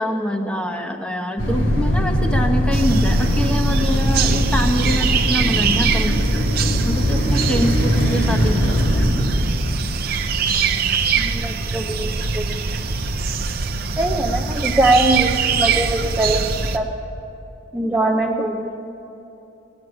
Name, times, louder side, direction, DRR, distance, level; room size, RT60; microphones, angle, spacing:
voice 1, 0.0-9.1, equal, 5° left, 3 dB, 1.0 m, -25 dB
sound 1, 1.4-9.4, equal, 90° left, 3.5 m, -20 dB
sound 2, 2.7-16.8, right 5 dB, 50° right, 0.7 m, -23 dB
voice 2, 11.1-12.6 14.0-16.9 17.7-18.7, right 2 dB, 10° right, -2 dB, 0.6 m, -22 dB
17.5 x 8.0 x 9.9 m, 2.9 s
head